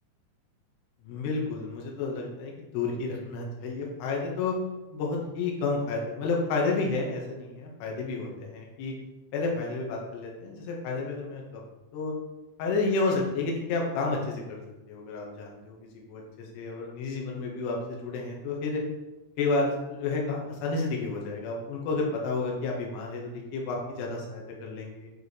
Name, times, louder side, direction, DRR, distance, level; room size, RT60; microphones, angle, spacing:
voice 1, 1.0-4.5 4.9-8.9 9.3-11.4 11.9-12.1 12.6-14.6 14.9-15.8 16.1-16.2 16.5-18.8 19.4-25.1, left 3 dB, 70° left, -1 dB, 3.2 m, -30 dB
9.6 x 5.0 x 3.2 m, 1.0 s
omnidirectional pair, 5.4 m